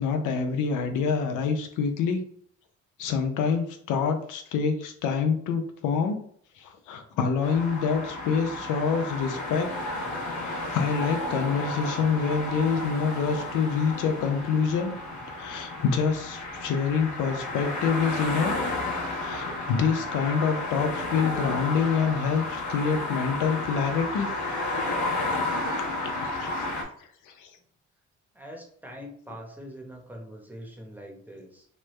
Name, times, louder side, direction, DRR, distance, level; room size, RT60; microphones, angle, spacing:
voice 1, 0.0-2.2 3.0-6.2 6.6-9.7 10.3-14.9 15.4-18.5 19.2-24.3 25.5-26.7 27.2-27.5, left 6 dB, 85° left, 6 dB, 0.6 m, -26 dB
sound 1, 7.4-26.8, left 2 dB, 65° left, 1.0 m, -32 dB
voice 2, 28.3-31.7, equal, 5° right, 1 dB, 0.8 m, -43 dB
3.2 x 2.1 x 3.1 m, 0.62 s
cardioid pair, 90°, 30 cm